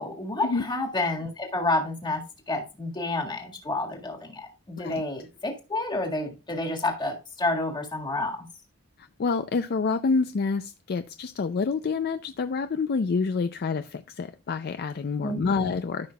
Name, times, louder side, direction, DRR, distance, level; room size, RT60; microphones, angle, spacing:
voice 1, 0.0-2.2 2.5-8.5 15.2-15.8, left 2 dB, 20° left, 1.8 m, -29 dB
voice 2, 9.2-16.1, left 4 dB, 45° left, 0.4 m, -27 dB
13.5 x 5.8 x 2.3 m
head